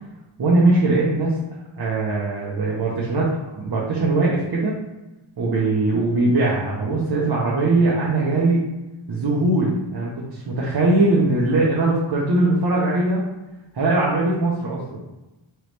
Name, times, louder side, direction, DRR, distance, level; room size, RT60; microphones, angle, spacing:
voice 1, 0.4-1.3 1.8-4.8 5.4-8.6 9.1-13.3 13.7-15.0, right 2 dB, 50° right, -5 dB, 0.9 m, -20 dB
4.6 x 3.1 x 3.3 m, 1.0 s
wide cardioid pair, 115°, 49 cm